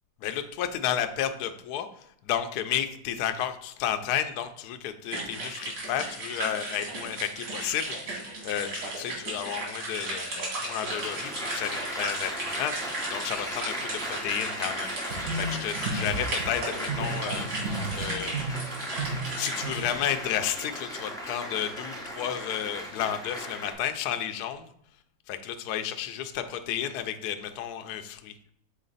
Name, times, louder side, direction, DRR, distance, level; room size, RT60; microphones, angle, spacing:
voice 1, 0.2-18.4 19.3-24.7 25.3-28.3, left 10 dB, 70° left, 8 dB, 1.0 m, -32 dB
sound 1, 5.1-19.9, right 2 dB, 85° right, 2.8 m, -36 dB
Applause, 10.8-23.7, equal, 5° left, 0.7 m, -37 dB
sound 2, 15.1-16.5 16.9-20.0, right 3 dB, 60° right, 3.5 m, -33 dB
6.5 x 4.1 x 3.9 m, 0.73 s
omnidirectional pair, 2.0 m